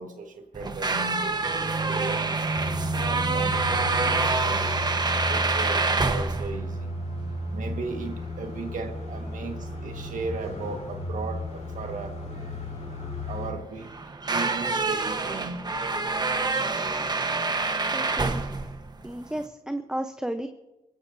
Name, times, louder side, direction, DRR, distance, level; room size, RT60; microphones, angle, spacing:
voice 1, 0.0-1.4 1.9-4.7 5.3-7.0 7.5-12.1 13.3-13.9 14.2-15.6, right 4 dB, 65° right, 4 dB, 1.6 m, -36 dB
sound 1, 0.5-19.5, right 3 dB, 30° right, 1.1 m, -28 dB
sound 2, 2.5-13.5, left 1 dB, 60° left, 3.8 m, -34 dB
voice 2, 17.9-18.4 19.0-20.5, right 1 dB, 5° right, 7 dB, 0.8 m, -32 dB
27.5 x 16.5 x 2.7 m, 1.1 s
cardioid pair, 90°, 14 cm